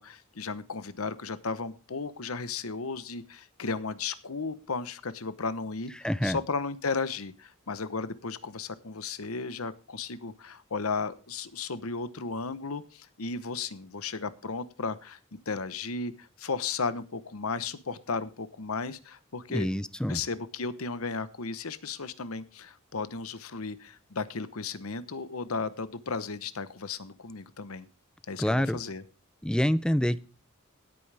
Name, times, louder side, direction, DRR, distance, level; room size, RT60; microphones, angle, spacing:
voice 1, 0.0-19.7 20.1-27.9 28.3-29.0, left 4 dB, 80° left, 14 dB, 1.0 m, -35 dB
voice 2, 6.0-6.4 19.5-20.2 28.4-28.8 29.4-30.2, equal, 5° left, 16 dB, 0.4 m, -26 dB
17.0 x 8.7 x 3.4 m, 0.35 s
head